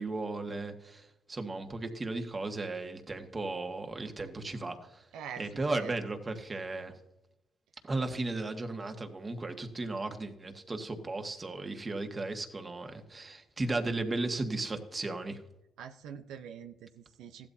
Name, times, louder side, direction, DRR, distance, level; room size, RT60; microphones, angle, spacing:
voice 1, 0.0-5.1 5.4-6.9 7.8-15.4, right 2 dB, 30° right, 5 dB, 1.7 m, -35 dB
voice 2, 15.8-17.5, right 8 dB, 85° right, 7 dB, 0.7 m, -44 dB
15.5 x 12.0 x 2.8 m, 0.88 s
cardioid pair, 90°, 0 cm